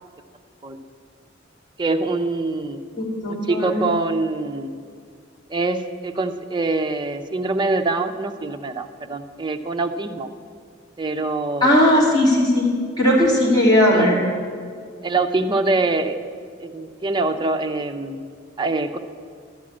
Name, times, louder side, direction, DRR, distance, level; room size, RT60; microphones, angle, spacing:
voice 1, 1.8-2.8 3.3-4.7 5.5-10.3 11.0-11.8 13.8-14.2 15.0-16.2 16.6-18.2 18.6-19.0, right 3 dB, 25° right, 6 dB, 0.6 m, -24 dB
voice 2, 3.0-3.8 11.6-12.7 13.0-14.2, left 1 dB, 20° left, -5 dB, 3.0 m, -17 dB
12.0 x 6.3 x 8.6 m, 2.1 s
head